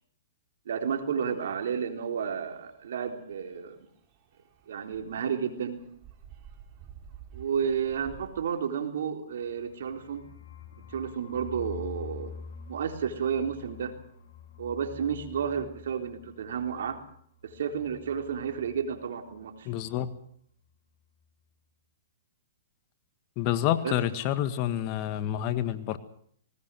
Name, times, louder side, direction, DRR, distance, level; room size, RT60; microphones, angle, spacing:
voice 1, 0.7-3.8 4.7-5.8 7.3-10.3 10.7-12.3 12.7-13.9 14.6-17.0 17.4-19.7 23.8-24.0, right 7 dB, 75° right, 5 dB, 3.9 m, -31 dB
sound 1, 1.2-8.9, right 8 dB, 35° right, 5.5 m, -52 dB
sound 2, 9.3-19.0 19.3-19.4 19.7-20.2, left 7 dB, 60° left, 7.9 m, -47 dB
voice 2, 19.6-20.1 23.4-26.0, left 11 dB, 40° left, 11 dB, 1.7 m, -28 dB
19.5 x 19.0 x 7.8 m, 0.62 s
hypercardioid pair, 135°, 0 cm